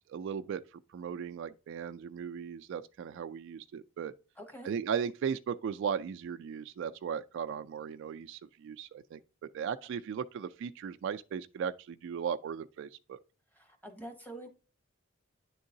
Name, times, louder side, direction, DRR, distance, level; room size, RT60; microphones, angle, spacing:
voice 1, 0.0-4.1 4.6-9.2 9.5-13.2, right 7 dB, 65° right, 0.3 m, -37 dB
voice 2, 4.4-4.7 13.5-14.5, right 1 dB, 10° left, 1.0 m, -46 dB
9.6 x 3.7 x 2.7 m
head